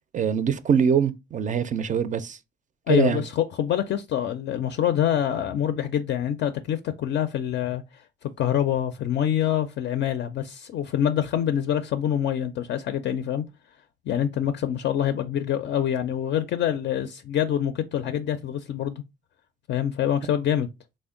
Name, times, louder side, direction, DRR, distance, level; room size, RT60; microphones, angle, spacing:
voice 1, 0.1-2.4 2.9-3.2, right 7 dB, 40° right, 0.4 m, -23 dB
voice 2, 2.9-7.8 8.4-13.4 14.1-19.0 19.7-20.7, left 10 dB, 65° left, 0.4 m, -25 dB
3.5 x 2.1 x 3.6 m
cardioid pair, 90°, 20 cm